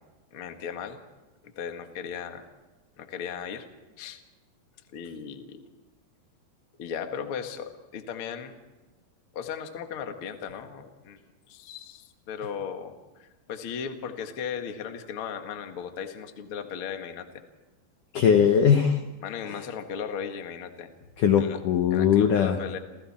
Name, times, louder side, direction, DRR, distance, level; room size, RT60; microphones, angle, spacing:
voice 1, 0.3-1.0 1.6-2.4 3.0-3.7 4.0-4.2 4.9-5.6 6.8-8.6 9.3-17.3 19.2-20.9 21.4-21.6 21.9-22.8, left 7 dB, 50° left, 5 dB, 1.7 m, -36 dB
voice 2, 18.1-19.0 19.5-19.6 21.2-22.6, left 8 dB, 70° left, 6 dB, 2.1 m, -20 dB
29.0 x 28.5 x 4.4 m, 1.2 s
omnidirectional pair, 4.9 m